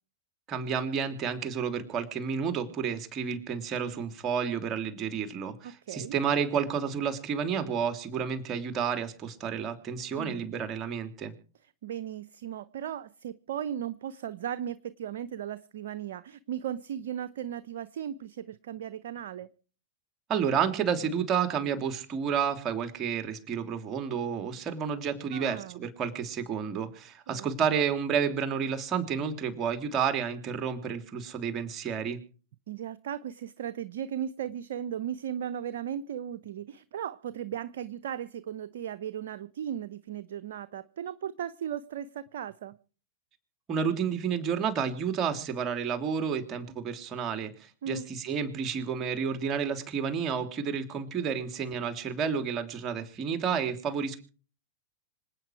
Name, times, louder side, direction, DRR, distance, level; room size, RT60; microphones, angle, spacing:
voice 1, 0.5-11.3 20.3-32.2 43.7-54.2, right 7 dB, 30° right, 8 dB, 3.1 m, -30 dB
voice 2, 5.6-6.1 10.2-10.5 11.8-19.5 25.3-25.9 27.3-27.5 32.7-42.7 47.8-48.1, right 10 dB, 65° right, 12 dB, 0.8 m, -36 dB
26.0 x 9.1 x 4.7 m, 0.39 s
hypercardioid pair, 100°, 0 cm